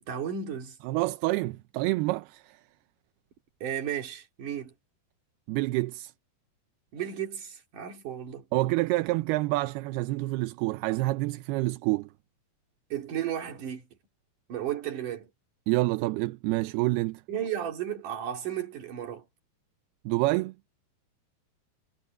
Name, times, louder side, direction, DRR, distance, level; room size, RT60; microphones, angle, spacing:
voice 1, 0.0-0.8 3.6-4.7 6.9-8.5 12.9-13.9 14.5-15.3 17.3-19.2, right 9 dB, 55° right, 4.5 m, -34 dB
voice 2, 0.8-2.6 5.5-6.1 8.5-12.1 15.7-17.2 20.1-20.5, right 20 dB, 85° right, 2.7 m, -27 dB
omnidirectional pair, 4.5 m